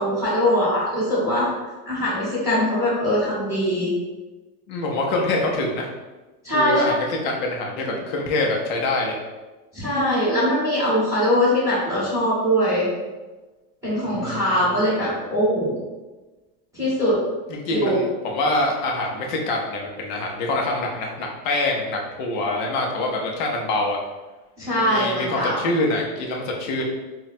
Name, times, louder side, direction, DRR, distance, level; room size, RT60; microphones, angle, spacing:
voice 1, 0.0-1.5 1.8-3.9 6.4-6.9 7.9-8.0 9.7-12.9 13.8-15.7 16.7-17.1 17.7-18.0 24.6-25.6, equal, 5° right, -11 dB, 0.9 m, -22 dB
voice 2, 4.7-5.9 6.5-9.2 14.1-14.6 17.5-24.0 24.8-26.8, left 2 dB, 35° left, 0 dB, 0.5 m, -25 dB
3.5 x 2.2 x 4.1 m, 1.2 s
supercardioid pair, 175°, 45 cm